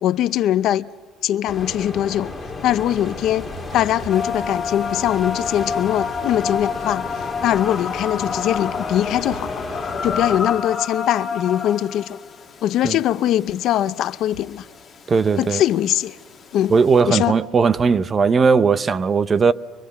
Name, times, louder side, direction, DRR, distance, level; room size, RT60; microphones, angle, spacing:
voice 1, 0.0-0.9 1.2-2.3 2.6-9.8 10.0-12.2 12.6-14.7 15.4-16.2 16.5-16.7 17.1-17.3, left 12 dB, 55° left, 0.6 m, -21 dB
sound 1, 1.5-10.4, left 2 dB, 5° left, 4.1 m, -33 dB
sound 2, 3.5-4.4 5.9-6.8 8.6-8.7 9.0-9.9 10.2-10.5 13.6-14.7 15.0-15.1 17.0-18.0, right 2 dB, 85° right, 6.1 m, -46 dB
sound 3, 4.1-17.0, left 5 dB, 25° left, 2.2 m, -30 dB
voice 2, 15.1-15.6 16.7-19.5, right 5 dB, 25° right, 0.6 m, -17 dB
25.0 x 22.0 x 6.9 m
cardioid pair, 155°, 0 cm